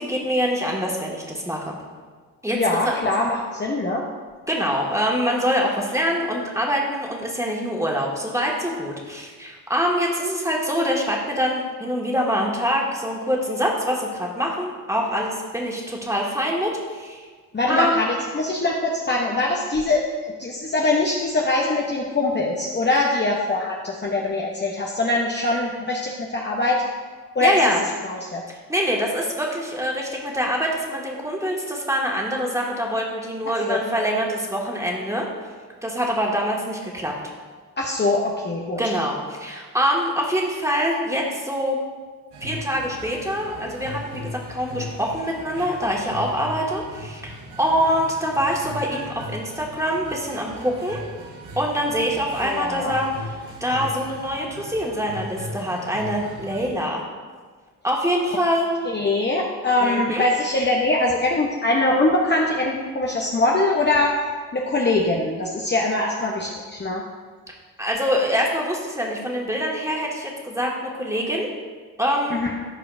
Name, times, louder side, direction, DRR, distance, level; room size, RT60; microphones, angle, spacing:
voice 1, 0.0-1.7 2.4-2.9 4.5-17.2 17.7-18.0 27.4-27.8 28.7-35.3 35.8-37.1 38.8-41.8 42.4-51.0 51.6-53.3 53.6-57.0 57.8-58.7 59.8-60.3 67.8-71.5 72.0-72.4, equal, 5° right, -2 dB, 2.0 m, -24 dB
voice 2, 2.5-4.0 17.5-20.0 20.4-26.8 27.3-27.6 28.0-28.4 33.7-33.8 37.8-38.8 52.4-52.9 58.9-64.2 64.5-67.0 72.3-72.5, left 2 dB, 25° left, -2 dB, 1.0 m, -22 dB
sound 1, 42.3-56.7, equal, 65° right, 1.4 m, -38 dB
14.0 x 4.9 x 2.7 m, 1.5 s
hypercardioid pair, 45°, 45 cm